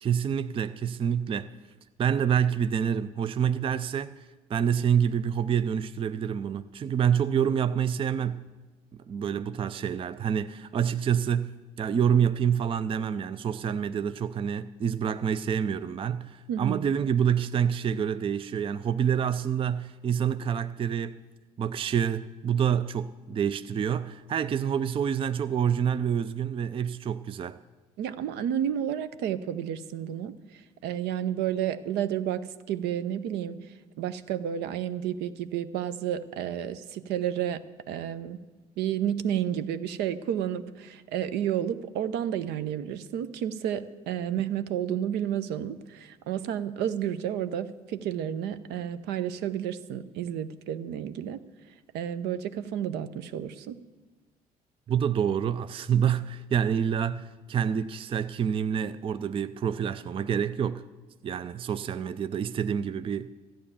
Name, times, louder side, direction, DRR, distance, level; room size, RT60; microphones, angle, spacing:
voice 1, 0.0-1.5 2.0-4.2 4.5-8.4 8.9-21.2 21.6-27.6 54.9-60.8 61.2-63.3, right 8 dB, 25° right, 0.5 m, -27 dB
voice 2, 16.5-16.9 28.0-33.6 34.0-37.6 37.9-38.4 38.8-51.4 51.9-53.8, right 10 dB, 60° right, 0.7 m, -31 dB
14.0 x 8.9 x 7.0 m
figure-of-eight pair, 55°, 20 cm